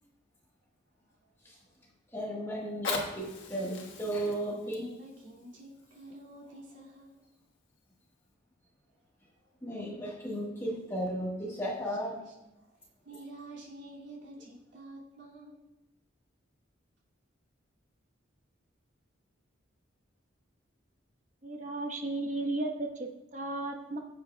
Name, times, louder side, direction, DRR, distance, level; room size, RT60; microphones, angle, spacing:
voice 1, 2.1-4.9 9.6-12.2, right 1 dB, 15° left, -3 dB, 1.4 m, -35 dB
Fire, 2.6-7.6 8.2-8.3, left 4 dB, 75° left, 1.6 m, -42 dB
voice 2, 4.5-7.2 9.4-9.5 11.9-12.0 12.3-12.4 12.6-15.6, right 1 dB, 65° right, -5 dB, 2.5 m, -49 dB
voice 3, 21.4-24.0, right 2 dB, 40° right, 2 dB, 1.1 m, -34 dB
16.0 x 7.6 x 2.3 m, 0.98 s
head